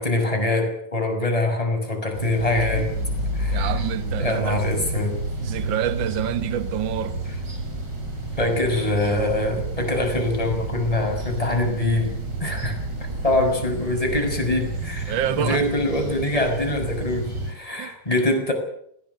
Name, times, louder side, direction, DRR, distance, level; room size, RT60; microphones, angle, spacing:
voice 1, 0.0-2.9 3.3-3.7 4.2-5.2 8.4-12.8 13.2-18.5, left 2 dB, 10° left, 6.1 m, -24 dB
sound 1, 2.1-17.5, right 2 dB, 30° right, 4.9 m, -30 dB
voice 2, 3.5-4.6 5.4-7.2 15.1-15.6 17.8-17.9, right 10 dB, 65° right, 1.2 m, -27 dB
21.0 x 18.0 x 8.1 m
omnidirectional pair, 3.8 m